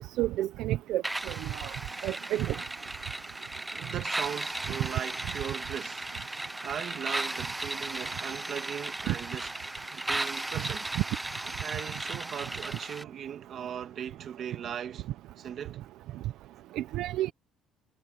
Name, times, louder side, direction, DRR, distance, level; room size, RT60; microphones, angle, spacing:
voice 1, 0.0-1.3 1.6-1.7 2.0-2.5 9.1-9.2 16.8-17.3, right 14 dB, 70° right, 0.8 m, -30 dB
sound 1, 1.0-13.0, right 2 dB, 10° right, 0.6 m, -36 dB
voice 2, 3.7-6.1 6.6-9.5 9.9-10.9 11.6-15.1 15.4-15.8, right 9 dB, 45° right, 1.9 m, -38 dB
cardioid pair, 160°, 0 cm